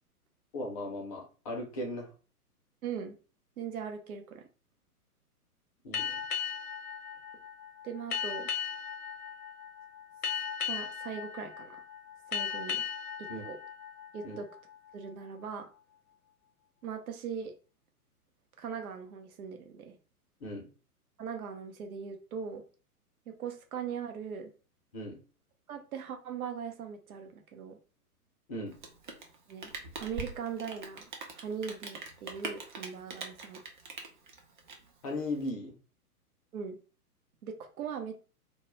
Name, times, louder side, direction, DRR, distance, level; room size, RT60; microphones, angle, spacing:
voice 1, 0.5-2.1 5.8-6.2 13.3-13.4 14.2-14.4 20.4-20.7 24.9-25.2 28.5-28.7 35.0-35.7, left 1 dB, 25° left, 0 dB, 0.5 m, -37 dB
voice 2, 2.8-3.2 3.6-4.5 7.8-8.5 10.6-11.8 12.3-12.8 13.2-13.6 14.1-14.5 14.9-15.7 16.8-17.5 18.6-20.0 21.2-22.6 23.3-24.5 25.7-27.8 29.5-29.7 30.0-31.0 31.3-33.6 36.5-36.8 37.4-38.1, right 7 dB, 65° right, 5 dB, 0.7 m, -40 dB
sound 1, 5.9-15.1, left 7 dB, 75° left, 0.7 m, -37 dB
Rain, 28.7-35.5, right 4 dB, 35° right, 0.4 m, -43 dB
2.3 x 2.0 x 2.9 m, 0.35 s
figure-of-eight pair, 120°, 46 cm